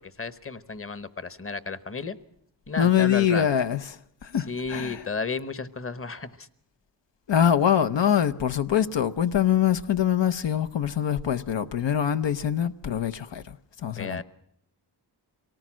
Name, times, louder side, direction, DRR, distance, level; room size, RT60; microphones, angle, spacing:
voice 1, 0.2-2.2 2.7-3.4 4.5-6.5 14.0-14.2, left 4 dB, 30° left, 1.1 m, -33 dB
voice 2, 2.8-5.1 7.3-13.6 13.8-14.2, left 9 dB, 85° left, 0.8 m, -24 dB
24.0 x 18.5 x 6.1 m
wide cardioid pair, 75°, 42 cm